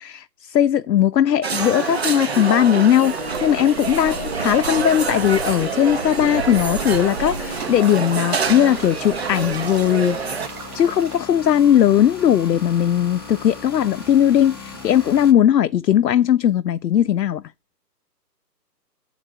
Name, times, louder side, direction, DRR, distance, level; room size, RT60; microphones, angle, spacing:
voice 1, 0.0-10.5 10.7-17.4, left 10 dB, 80° left, 0.5 m, -18 dB
sound 1, 1.4-10.5, right 5 dB, 40° right, 0.5 m, -27 dB
sound 2, 1.6-15.3, left 3 dB, 15° left, 0.5 m, -37 dB
sound 3, 3.1-11.2, right 5 dB, 65° right, 1.0 m, -35 dB
8.6 x 3.9 x 5.7 m
figure-of-eight pair, 140°, 49 cm